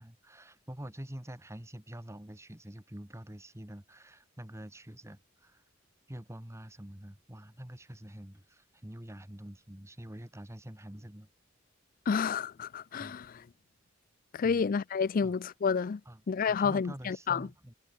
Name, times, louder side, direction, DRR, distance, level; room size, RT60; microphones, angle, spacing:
voice 1, 0.0-5.6 6.1-11.3 13.0-13.2 14.4-14.6 15.2-15.4 16.0-16.2 16.5-17.7, right 1 dB, 15° right, 1.6 m, -46 dB
voice 2, 12.1-13.3 14.3-16.0 16.3-17.5, left 6 dB, 45° left, 0.4 m, -29 dB
head